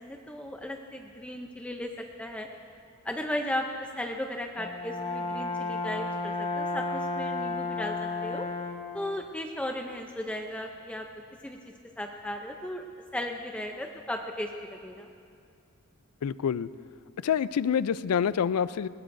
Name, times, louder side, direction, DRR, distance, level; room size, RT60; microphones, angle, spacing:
voice 1, 0.0-2.5 3.0-8.5 8.9-11.1 11.4-11.6 12.0-12.9 13.1-15.1, left 1 dB, 5° left, 3 dB, 0.5 m, -36 dB
Brass instrument, 4.6-9.0, left 3 dB, 30° left, 1.1 m, -32 dB
voice 2, 16.2-16.7 17.2-18.9, left 8 dB, 75° left, 17 dB, 0.4 m, -27 dB
21.0 x 19.0 x 2.6 m, 2.4 s
head